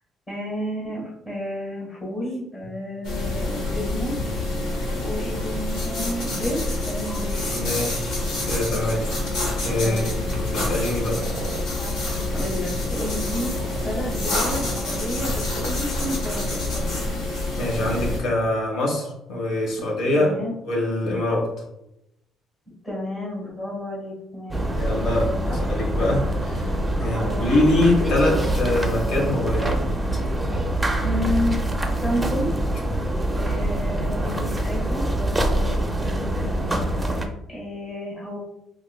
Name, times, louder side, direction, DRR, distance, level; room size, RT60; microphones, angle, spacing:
voice 1, 0.3-4.1 4.6-7.4 7.7-7.8 9.8-10.2 12.0-13.5 13.8-17.0 20.1-20.5 22.8-24.7 27.0-27.5 31.0-31.6 32.0-32.5 33.3-38.4, left 1 dB, 30° left, -4 dB, 1.3 m, -31 dB
sound 1, 3.0-18.2, left 2 dB, 80° left, 1.2 m, -27 dB
voice 2, 7.5-9.2 9.6-10.0 10.3-11.3 17.6-20.3 20.6-21.6 24.8-29.8, left 1 dB, 65° left, -1 dB, 1.1 m, -24 dB
sound 2, 11.0-11.6 13.1-14.1, right 6 dB, 65° right, 0.3 m, -39 dB
sound 3, 24.5-37.3, right 1 dB, 10° right, 0.5 m, -24 dB
4.7 x 2.5 x 2.2 m, 0.85 s
cardioid pair, 110°, 0 cm